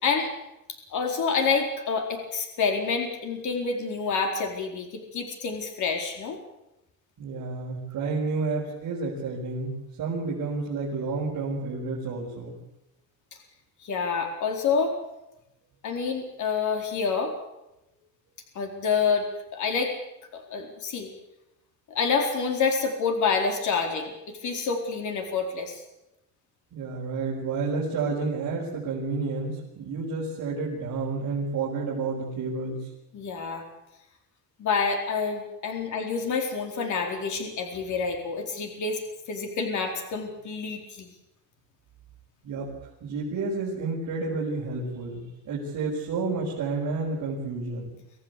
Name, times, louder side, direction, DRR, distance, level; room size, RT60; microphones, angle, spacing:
voice 1, 0.9-6.4 13.8-14.9 15.8-17.3 18.5-19.9 20.3-21.1 21.9-24.1 24.4-25.8 33.1-33.6 34.6-39.0 39.3-41.1, left 5 dB, 55° left, 3 dB, 4.5 m, -27 dB
voice 2, 7.2-12.6 26.7-32.9 42.4-42.7 43.0-48.0, right 3 dB, 55° right, -5 dB, 5.8 m, -30 dB
25.5 x 15.5 x 8.5 m, 0.90 s
cardioid pair, 170°, 34 cm